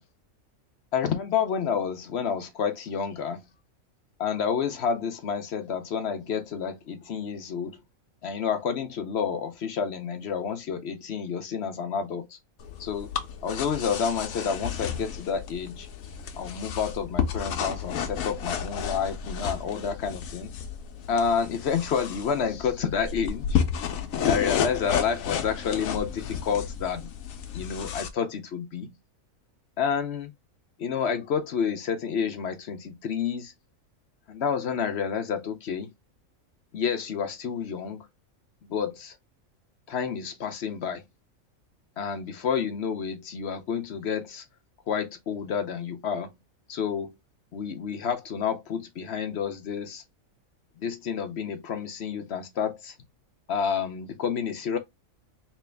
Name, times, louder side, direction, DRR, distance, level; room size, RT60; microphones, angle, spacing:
voice 1, 0.9-3.4 4.2-7.8 8.2-12.4 12.8-13.1 13.4-15.9 16.4-20.5 21.1-23.6 24.3-27.1 27.5-28.9 29.8-30.3 30.8-33.5 34.3-35.9 36.7-38.1 38.7-39.1 39.9-41.0 42.0-44.4 44.9-46.3 46.7-47.1 47.5-50.0 50.8-52.9 53.5-54.8, left 7 dB, 60° left, 0.8 m, -29 dB
sound 1, 12.6-28.1, left 7 dB, 80° left, 1.1 m, -32 dB
3.5 x 3.0 x 3.2 m
omnidirectional pair, 1.4 m